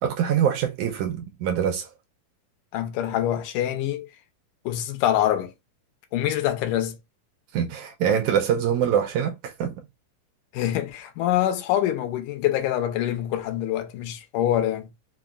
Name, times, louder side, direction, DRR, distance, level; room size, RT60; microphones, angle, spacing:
voice 1, 0.0-1.9 7.5-9.8, right 8 dB, 80° right, 1.8 m, -24 dB
voice 2, 2.7-4.1 4.7-5.5 6.1-7.0 10.5-14.9, left 12 dB, 80° left, 2.1 m, -25 dB
5.3 x 2.1 x 2.3 m
omnidirectional pair, 3.9 m